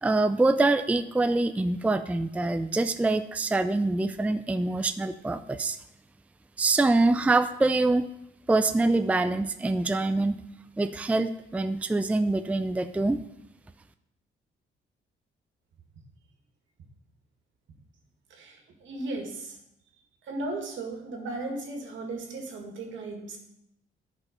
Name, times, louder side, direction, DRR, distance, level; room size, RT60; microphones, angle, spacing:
voice 1, 0.0-5.8 6.6-8.1 8.5-10.4 10.8-13.2, right 2 dB, 5° right, 10 dB, 0.4 m, -25 dB
voice 2, 18.3-19.6 20.3-23.4, right 2 dB, 75° right, 2 dB, 2.1 m, -36 dB
10.5 x 5.4 x 5.2 m, 0.82 s
cardioid pair, 90°, 20 cm